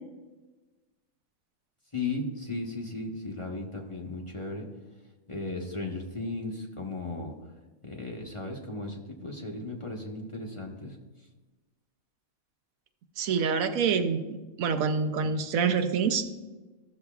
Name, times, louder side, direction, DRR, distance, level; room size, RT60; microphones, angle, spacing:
voice 1, 1.9-4.7 5.3-7.3 7.8-11.0, left 2 dB, 25° left, 0 dB, 0.9 m, -36 dB
voice 2, 13.2-14.2 14.6-16.3, right 6 dB, 85° right, 8 dB, 1.1 m, -26 dB
14.0 x 6.8 x 2.3 m, 1.2 s
omnidirectional pair, 1.4 m